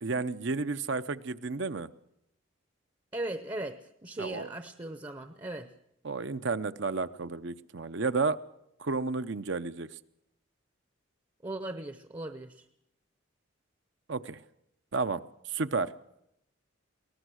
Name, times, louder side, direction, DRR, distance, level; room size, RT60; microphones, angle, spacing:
voice 1, 0.0-1.9 4.2-4.5 6.0-8.4 8.8-9.9 14.1-14.4 14.9-15.2 15.5-15.9, right 4 dB, 65° right, 12 dB, 0.7 m, -31 dB
voice 2, 3.1-5.7 11.4-12.6, right 1 dB, 20° right, 9 dB, 0.7 m, -38 dB
22.0 x 18.5 x 6.4 m, 0.80 s
head